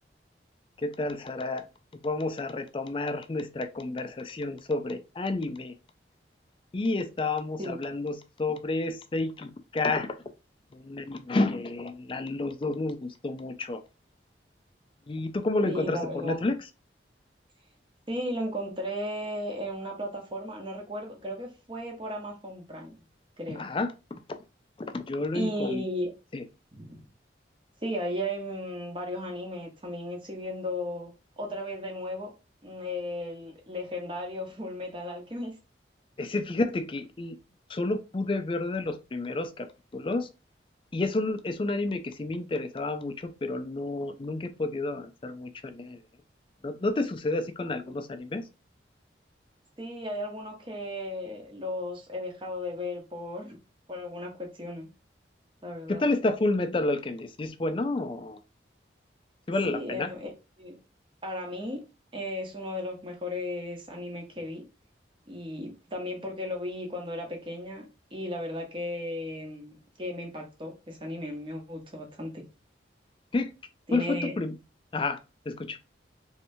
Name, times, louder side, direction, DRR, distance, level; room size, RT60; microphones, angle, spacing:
voice 1, 0.8-1.7 2.0-5.7 6.7-10.1 10.7-13.8 15.1-16.6 23.5-24.4 24.9-25.8 26.3-26.4 36.2-37.4 37.7-39.7 39.9-40.3 40.9-46.0 46.6-48.4 55.9-58.4 59.5-60.1 73.3-73.5 73.9-74.6 74.9-75.2 75.5-75.8, left 2 dB, 30° left, 0.4 m, -30 dB
voice 2, 15.6-16.4 18.1-23.0 23.4-23.6 25.3-26.1 26.7-27.0 27.8-32.3 32.6-35.6 49.8-53.6 53.9-54.9 55.6-56.0 59.6-60.3 60.6-60.8 61.2-61.8 62.1-64.6 65.3-72.4 73.9-74.3, left 1 dB, 25° right, 0.9 m, -35 dB
3.2 x 2.8 x 2.6 m
head